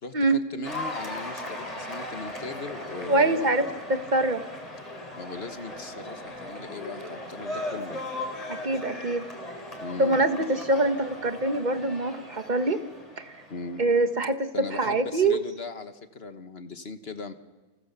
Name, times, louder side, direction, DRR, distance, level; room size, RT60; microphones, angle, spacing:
voice 1, 0.0-3.7 5.1-8.0 9.8-10.2 13.5-13.8 14.5-17.3, left 3 dB, 45° left, 8 dB, 1.6 m, -38 dB
Cheering / Applause, 0.6-14.0, left 1 dB, 25° left, 4.2 m, -38 dB
voice 2, 3.1-4.4 8.5-9.2 10.0-12.8 13.2-13.4 13.8-15.4, right 2 dB, 35° right, 8 dB, 1.4 m, -24 dB
28.5 x 28.0 x 6.9 m, 1.3 s
omnidirectional pair, 1.5 m